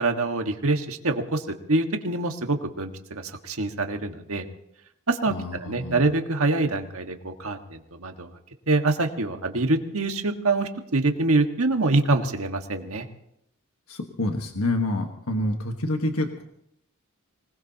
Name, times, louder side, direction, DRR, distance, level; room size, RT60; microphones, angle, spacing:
voice 1, 0.0-1.4 1.7-2.9 3.4-4.5 5.1-5.3 5.6-8.3 8.7-13.1, right 2 dB, 75° right, 5 dB, 1.6 m, -25 dB
voice 2, 5.3-6.0 13.9-16.4, left 1 dB, 75° left, 3 dB, 1.4 m, -28 dB
25.0 x 19.5 x 2.9 m, 0.78 s
head